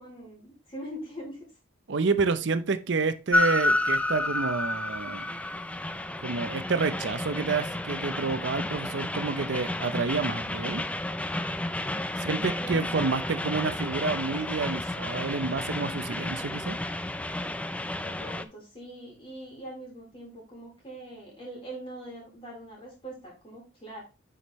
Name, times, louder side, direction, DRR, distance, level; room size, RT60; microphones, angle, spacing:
voice 1, 0.0-1.5 12.6-13.0 18.0-24.0, right 1 dB, 30° left, -3 dB, 3.9 m, -42 dB
voice 2, 1.9-5.2 6.2-10.8 12.2-16.8, right 4 dB, 70° right, 11 dB, 0.6 m, -29 dB
Train, 3.3-18.5, left 1 dB, 5° left, 0.4 m, -31 dB
8.4 x 5.1 x 3.1 m, 0.30 s
head